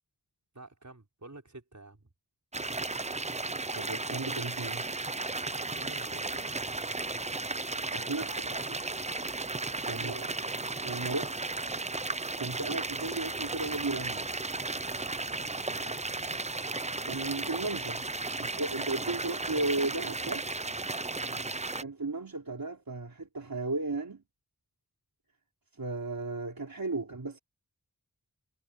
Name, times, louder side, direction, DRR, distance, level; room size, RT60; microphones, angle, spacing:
voice 1, 0.5-2.1 5.7-6.8 8.3-8.8 10.0-10.3 15.7-16.1 21.1-21.6, right 2 dB, 50° right, 6.2 m, -50 dB
sound 1, 2.5-21.8, right 3 dB, 20° right, 0.6 m, -35 dB
voice 2, 3.7-4.8 7.9-8.3 9.9-10.3 10.8-11.4 12.4-14.3 17.0-18.0 18.4-20.5 21.8-24.2 25.8-27.4, right 3 dB, 65° right, 3.7 m, -35 dB
wide cardioid pair, 45°, 37 cm